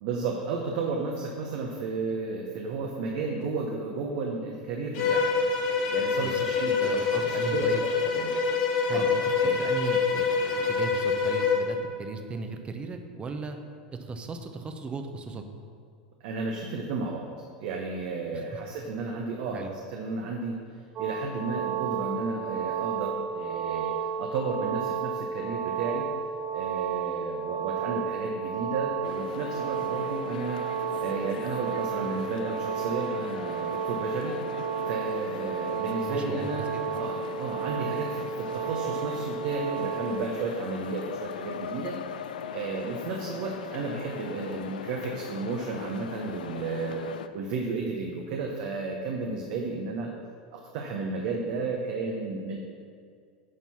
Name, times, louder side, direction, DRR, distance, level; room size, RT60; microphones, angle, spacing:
voice 1, 0.0-5.3 5.9-8.3 8.9-9.1 9.4-9.6 16.2-17.3 17.6-20.6 21.0-23.9 24.2-26.1 26.5-30.6 31.0-34.4 34.9-36.7 36.9-42.0 42.5-47.0 47.3-50.1 50.5-52.6, right 4 dB, 60° right, 0 dB, 1.0 m, -33 dB
Bowed string instrument, 4.9-11.7, left 5 dB, 55° left, 1.5 m, -26 dB
voice 2, 6.2-7.8 8.9-10.2 10.7-13.6 14.0-15.4 18.3-18.6 19.5-19.7 36.1-36.8, right 4 dB, 25° right, 6 dB, 0.9 m, -37 dB
sound 1, 21.0-40.2, right 7 dB, 40° right, 1.2 m, -32 dB
sound 2, 29.0-47.3, left 8 dB, 80° left, 0.4 m, -40 dB
9.6 x 4.6 x 5.8 m, 2.3 s
hypercardioid pair, 95°, 4 cm